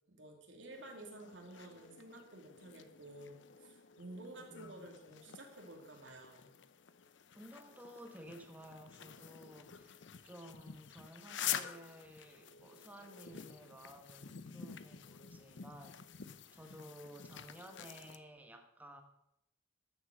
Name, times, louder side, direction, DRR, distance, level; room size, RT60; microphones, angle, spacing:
voice 1, 0.1-6.5, right 1 dB, 80° right, 2 dB, 2.6 m, -52 dB
sound 1, 0.7-18.2, left 9 dB, 80° left, 0.7 m, -48 dB
voice 2, 4.5-5.0 7.3-16.0 16.5-19.0, equal, 10° right, 5 dB, 1.4 m, -54 dB
13.0 x 7.2 x 6.4 m, 0.82 s
head